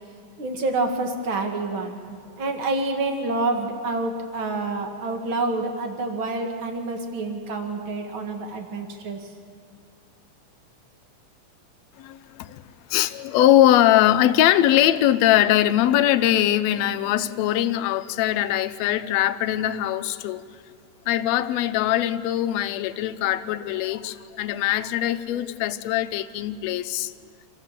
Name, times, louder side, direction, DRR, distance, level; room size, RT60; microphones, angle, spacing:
voice 1, 0.4-9.2, right 2 dB, 45° right, 3 dB, 2.5 m, -28 dB
voice 2, 12.0-12.6 12.9-20.4 21.1-27.1, left 12 dB, 75° left, 9 dB, 1.7 m, -21 dB
27.0 x 15.0 x 7.5 m, 2.2 s
omnidirectional pair, 3.5 m